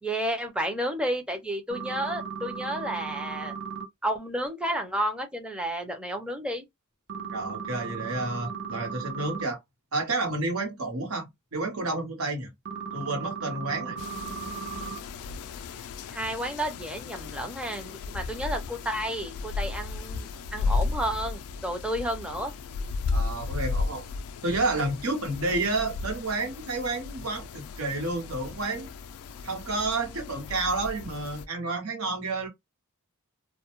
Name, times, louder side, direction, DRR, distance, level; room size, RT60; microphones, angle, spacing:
voice 1, 0.0-3.5 4.0-6.7 16.1-22.5, right 1 dB, 5° right, 0.5 m, -31 dB
sound 1, 1.7-3.9 7.1-9.4 12.7-15.0, right 6 dB, 55° right, 0.6 m, -36 dB
voice 2, 7.3-9.6 9.9-11.2 11.5-12.5 12.9-14.0 23.1-24.0 24.4-28.9 29.4-32.5, right 2 dB, 75° right, 1.0 m, -30 dB
sound 2, 14.0-31.5, left 4 dB, 80° left, 0.3 m, -35 dB
2.2 x 2.1 x 2.9 m
head